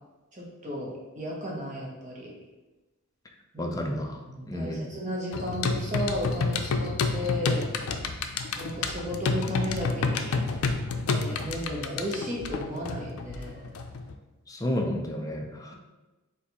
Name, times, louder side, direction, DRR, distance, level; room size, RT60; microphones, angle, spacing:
voice 1, 0.3-2.3 3.5-3.7 4.3-7.7 8.6-10.4 11.1-13.7, equal, 35° right, -3 dB, 1.0 m, -34 dB
voice 2, 3.6-4.9 14.5-15.7, left 1 dB, 15° left, 2 dB, 0.4 m, -31 dB
sound 1, 5.3-14.1, left 4 dB, 85° left, 0.4 m, -30 dB
4.5 x 2.5 x 4.0 m, 1.1 s
head